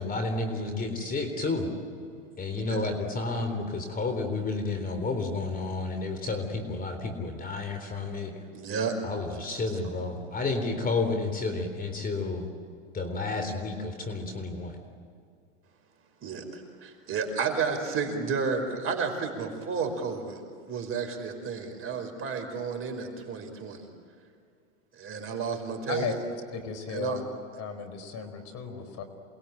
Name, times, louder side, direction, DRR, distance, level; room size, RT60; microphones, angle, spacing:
voice 1, 0.0-1.7 2.4-8.3 9.0-12.5 12.9-14.8, left 3 dB, 20° left, 6 dB, 3.7 m, -31 dB
voice 2, 8.5-9.0 16.2-20.4 20.7-23.9 25.0-26.1 26.9-27.2, right 5 dB, 35° right, 5 dB, 5.6 m, -32 dB
voice 3, 26.5-27.2 27.6-29.0, left 5 dB, 40° left, 9 dB, 4.7 m, -34 dB
28.5 x 21.5 x 9.2 m, 2.3 s
hypercardioid pair, 110°, 39 cm